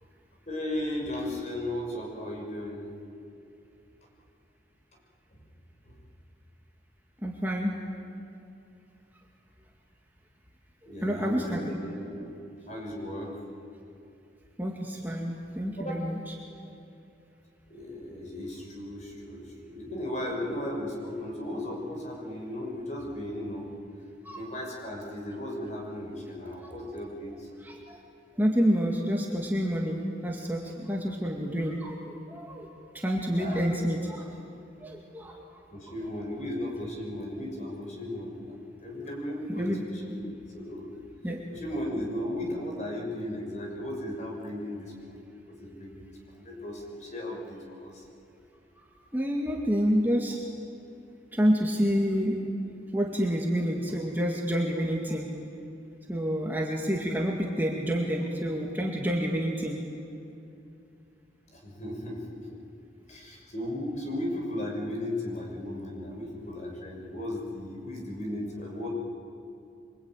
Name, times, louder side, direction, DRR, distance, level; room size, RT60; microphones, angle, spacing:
voice 1, 0.5-2.9 5.9-6.0 10.8-12.3 12.7-13.4 15.8-16.0 17.7-23.7 24.3-27.5 33.4-33.6 35.7-40.3 40.5-40.9 41.5-45.2 45.5-48.0 61.5-62.5 63.1-68.9, left 1 dB, 40° left, 0 dB, 6.1 m, -36 dB
voice 2, 7.2-7.8 11.0-11.8 14.6-16.3 24.2-24.4 26.6-26.7 27.6-28.0 28.4-32.7 32.9-34.3 34.8-35.4 39.5-39.8 41.2-41.4 48.8-48.9 49.1-50.4 51.3-52.4 52.9-55.3 56.1-59.8, equal, 10° right, -1 dB, 2.2 m, -28 dB
27.0 x 24.0 x 9.2 m, 2.7 s
head